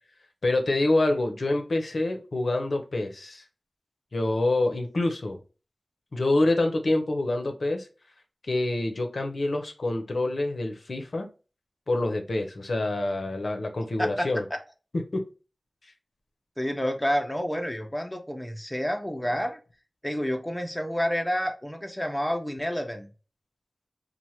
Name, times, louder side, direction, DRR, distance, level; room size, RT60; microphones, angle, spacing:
voice 1, 0.4-3.4 4.1-5.4 6.1-7.9 8.5-11.3 11.9-14.4 15.1-15.2, left 2 dB, 70° left, 5 dB, 0.6 m, -26 dB
voice 2, 14.0-14.6 16.6-19.6 20.0-23.1, equal, 10° left, 4 dB, 0.5 m, -29 dB
3.1 x 2.1 x 2.8 m, 0.34 s
wide cardioid pair, 75°, 0 cm